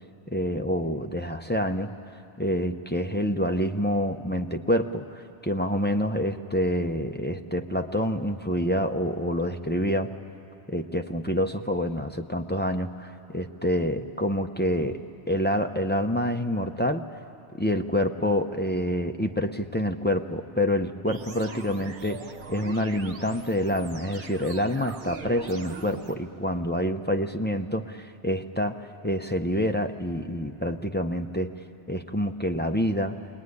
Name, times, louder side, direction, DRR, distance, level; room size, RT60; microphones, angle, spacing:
voice 1, 0.3-1.9 2.4-10.1 10.7-15.0 15.3-17.0 17.6-22.2 22.5-31.5 31.9-33.2, equal, 15° left, 4 dB, 0.4 m, -27 dB
sound 1, 21.1-26.1, right 4 dB, 50° right, 1.1 m, -41 dB
21.5 x 20.5 x 9.7 m, 2.7 s
omnidirectional pair, 1.2 m